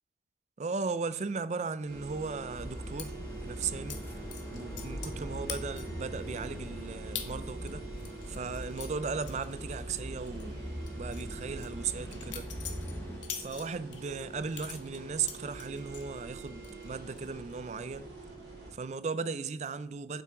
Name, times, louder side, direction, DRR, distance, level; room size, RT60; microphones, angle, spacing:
voice 1, 0.6-4.3 4.5-7.9 8.3-10.6 10.9-12.5 13.3-18.1 18.7-20.2, right 5 dB, 40° right, 0.4 m, -37 dB
sound 1, 1.8-18.7, right 3 dB, 60° right, 3.6 m, -45 dB
sound 2, 2.5-13.2, equal, 10° left, 0.9 m, -42 dB
sound 3, 3.0-3.1 3.9-4.0 4.3-5.2 5.5-6.0 6.5-6.6 7.2-7.3 7.7-10.0 10.3-10.4 10.9-14.0 14.5-16.1 16.5-16.9 17.2-17.6, left 9 dB, 90° left, 1.2 m, -43 dB
9.0 x 7.5 x 3.8 m
head